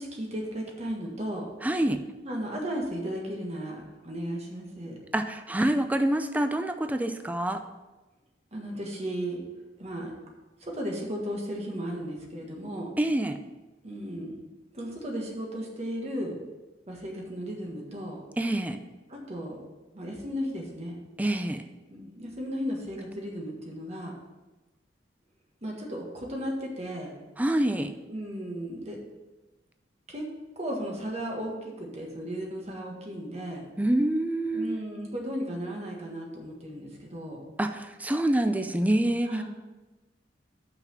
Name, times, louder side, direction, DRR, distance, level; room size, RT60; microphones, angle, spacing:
voice 1, 0.0-1.5 2.2-5.0 8.5-9.4 9.8-10.1 10.6-12.9 13.8-14.4 14.7-16.4 16.9-18.2 19.1-19.6 19.9-21.0 21.9-24.1 25.6-27.1 28.1-29.0 30.1-30.3 30.5-33.6 34.5-37.4 39.3-39.4, equal, 40° right, -1 dB, 1.6 m, -35 dB
voice 2, 1.6-2.0 5.1-7.6 13.0-13.4 18.4-18.8 21.2-21.6 27.4-27.9 33.8-34.8 37.6-39.4, right 1 dB, 10° right, 7 dB, 0.4 m, -26 dB
5.9 x 5.8 x 7.1 m, 1.1 s
head